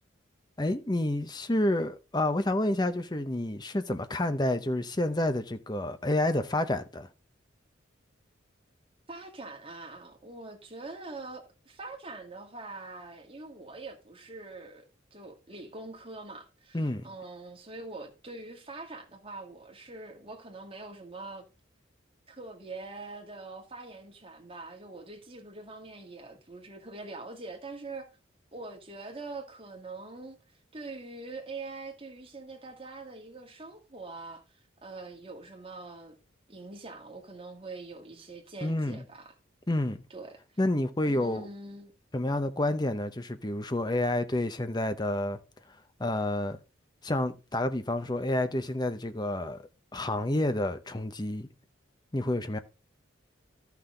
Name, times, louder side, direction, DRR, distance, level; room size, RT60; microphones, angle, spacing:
voice 1, 0.6-7.1 16.7-17.1 38.6-39.0 39.7-40.0 40.6-41.5 42.1-45.4 46.0-46.6 47.0-49.6 49.9-51.5 52.1-52.6, left 1 dB, 20° left, 0.7 m, -29 dB
voice 2, 9.1-21.5 22.3-28.1 28.5-30.4 30.7-34.4 34.8-36.2 36.5-39.3 40.1-40.4 41.0-41.9, right 3 dB, 30° right, 2.0 m, -43 dB
13.0 x 5.9 x 3.8 m
head